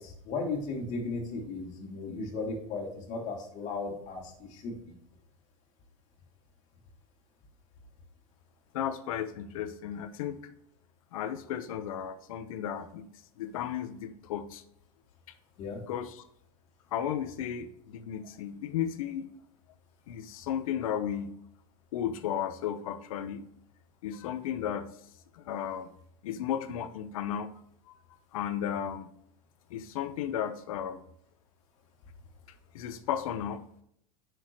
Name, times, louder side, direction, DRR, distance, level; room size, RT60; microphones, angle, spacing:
voice 1, 0.0-4.9 15.6-15.8, left 3 dB, 45° left, -1 dB, 2.8 m, -36 dB
voice 2, 8.7-10.4 11.1-13.1 13.4-14.6 15.9-16.2 16.9-19.3 20.1-21.3 21.9-23.5 24.0-24.9 25.3-25.9 26.2-27.5 27.9-28.0 28.3-29.1 29.7-31.0 32.7-33.6, left 9 dB, 85° left, 11 dB, 0.9 m, -34 dB
8.0 x 6.3 x 3.0 m, 0.69 s
supercardioid pair, 125°, 17 cm